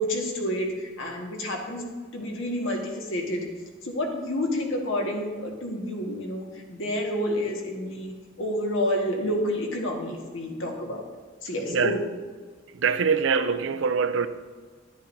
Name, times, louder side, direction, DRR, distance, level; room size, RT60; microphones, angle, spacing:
voice 1, 0.0-3.5 3.8-11.0 11.4-12.0, equal, 75° left, 1.6 m, -29 dB
voice 2, 11.7-12.0 12.7-14.3, right 5 dB, 65° right, 0.4 m, -24 dB
10.5 x 10.0 x 2.7 m
head